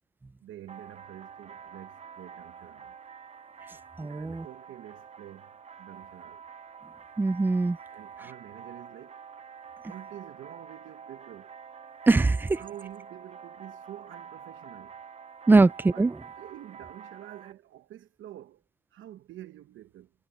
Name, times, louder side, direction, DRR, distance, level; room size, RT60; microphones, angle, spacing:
voice 1, 0.4-3.0 4.0-6.4 7.9-9.2 9.8-11.6 12.5-15.0 15.8-18.6 18.9-20.1, right 12 dB, 75° right, 1.1 m, -47 dB
sound 1, 0.7-17.5, right 6 dB, 35° right, 1.0 m, -47 dB
voice 2, 4.0-4.5 7.2-7.8 12.1-12.6 15.5-16.2, right 3 dB, 10° right, 0.3 m, -22 dB
cardioid pair, 90°, 20 cm